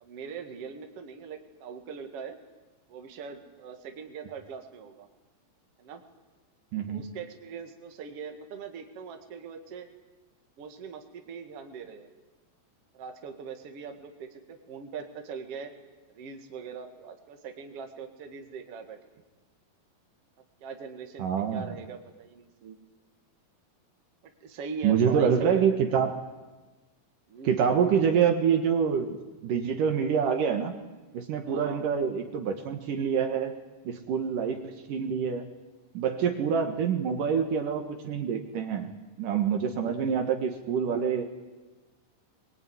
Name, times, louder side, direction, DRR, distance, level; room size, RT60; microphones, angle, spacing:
voice 1, 0.0-2.4 2.9-5.1 5.8-6.0 6.9-9.9 10.6-12.1 12.9-15.7 16.1-19.2 20.6-22.8 24.2-26.0 27.3-27.6 31.5-31.8, right 5 dB, 45° right, 5 dB, 2.6 m, -41 dB
voice 2, 6.7-7.0 21.2-21.6 24.8-26.2 27.4-30.7 31.1-35.5 35.9-38.9 39.2-41.2, right 7 dB, 65° right, 5 dB, 3.0 m, -26 dB
22.5 x 22.0 x 9.6 m, 1.2 s
omnidirectional pair, 4.2 m